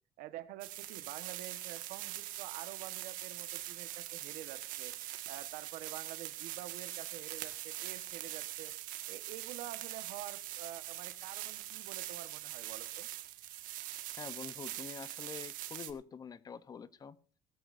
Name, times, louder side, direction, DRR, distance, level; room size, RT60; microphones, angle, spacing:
voice 1, 0.2-4.9 5.3-8.7 9.1-13.1, right 13 dB, 90° right, 1.3 m, -48 dB
sound 1, 0.6-15.9, right 15 dB, 75° right, 1.7 m, -43 dB
voice 2, 14.2-17.2, left 6 dB, 25° left, 0.7 m, -46 dB
18.5 x 14.0 x 2.6 m
cardioid pair, 155°, 14 cm